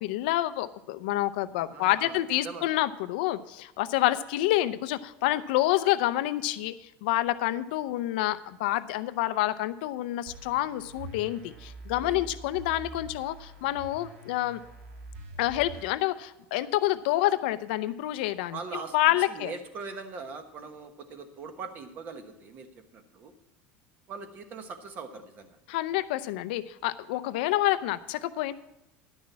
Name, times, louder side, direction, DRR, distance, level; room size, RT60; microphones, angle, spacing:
voice 1, 0.0-14.6 15.4-18.6 18.9-19.5 25.7-28.5, left 15 dB, 85° left, 13 dB, 0.6 m, -28 dB
voice 2, 1.7-2.7 12.0-12.2 18.5-23.3 24.1-25.6, right 4 dB, 35° right, 8 dB, 1.2 m, -41 dB
sound 1, 10.3-15.8, right 2 dB, 70° right, 2.2 m, -45 dB
11.0 x 6.2 x 7.3 m, 0.92 s
cardioid pair, 160°, 5 cm